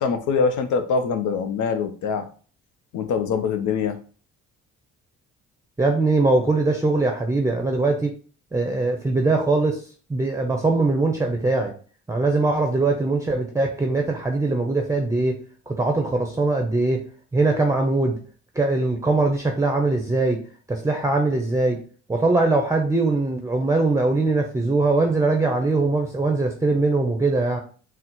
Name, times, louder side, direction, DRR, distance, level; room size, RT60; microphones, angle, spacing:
voice 1, 0.0-2.3 2.9-4.0, left 5 dB, 80° left, 8 dB, 0.7 m, -23 dB
voice 2, 5.8-8.1 8.5-9.8 10.1-11.7 12.1-15.4 15.7-17.0 17.3-18.2 18.6-20.4 20.7-21.8 22.1-27.6, right 3 dB, 10° right, 2 dB, 0.6 m, -21 dB
4.0 x 2.0 x 4.3 m, 0.41 s
cardioid pair, 90°, 30 cm